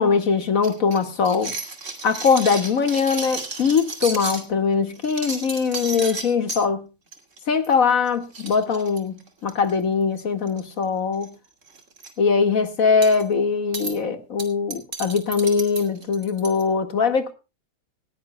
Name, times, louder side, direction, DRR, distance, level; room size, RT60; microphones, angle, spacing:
voice 1, 0.0-1.5 2.0-6.8 7.5-11.3 12.2-17.3, left 5 dB, 45° left, 2.0 m, -21 dB
sound 1, 0.6-4.5 5.0-6.6 7.1-7.4 7.6-7.8 8.1-8.2 8.3-9.7 10.5-10.8 11.1-11.3 11.7-12.1 13.0-13.2 13.7-13.9 14.4-16.6, right 3 dB, 35° right, 2.8 m, -33 dB
18.5 x 16.5 x 2.2 m
omnidirectional pair, 2.2 m